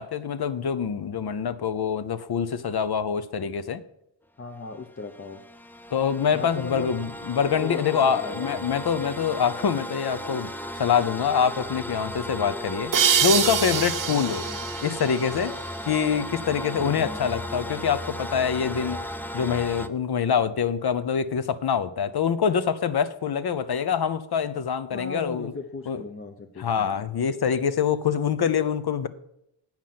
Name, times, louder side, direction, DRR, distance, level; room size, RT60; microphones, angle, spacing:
voice 1, 0.0-3.8 5.9-10.5 10.8-12.9 13.2-14.4 14.8-15.5 15.8-19.0 19.3-25.5 25.9-26.0 26.6-29.1, left 7 dB, 60° left, 13 dB, 0.7 m, -25 dB
voice 2, 4.4-5.4 6.3-6.9 7.4-7.8 8.1-8.5 14.1-14.6 16.8-17.4 24.9-27.0, left 3 dB, 30° left, 5 dB, 0.8 m, -38 dB
sound 1, 4.6-19.9, left 1 dB, 5° left, 0.4 m, -36 dB
sound 2, 12.9-16.3, right 8 dB, 45° right, 0.7 m, -26 dB
8.9 x 6.0 x 7.5 m, 0.79 s
wide cardioid pair, 125°, 44 cm